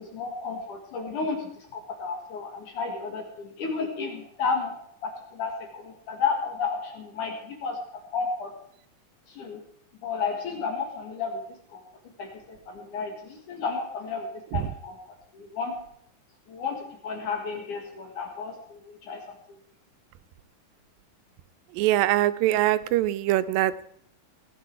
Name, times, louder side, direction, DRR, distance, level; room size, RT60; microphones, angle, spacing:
voice 1, 0.1-4.7 5.0-7.8 8.1-8.5 9.3-9.6 10.0-11.4 11.7-11.8 12.2-15.7 16.5-16.8 17.0-18.8 19.1-19.3, left 5 dB, 65° left, 3 dB, 3.1 m, -32 dB
voice 2, 21.8-23.9, right 14 dB, 90° right, 13 dB, 2.4 m, -23 dB
18.5 x 9.6 x 4.6 m, 0.67 s
omnidirectional pair, 4.0 m